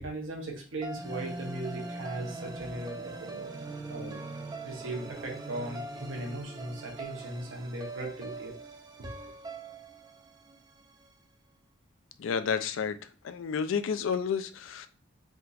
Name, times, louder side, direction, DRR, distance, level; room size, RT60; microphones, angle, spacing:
voice 1, 0.0-3.5 3.9-4.2 4.6-8.5 9.0-9.3, right 1 dB, 85° right, 1 dB, 1.0 m, -38 dB
sound 1, 0.8-11.1, right 2 dB, 20° right, 0.3 m, -42 dB
voice 2, 12.2-13.0 13.2-14.9, left 6 dB, 80° left, 11 dB, 0.3 m, -30 dB
3.5 x 2.7 x 2.4 m, 0.39 s
head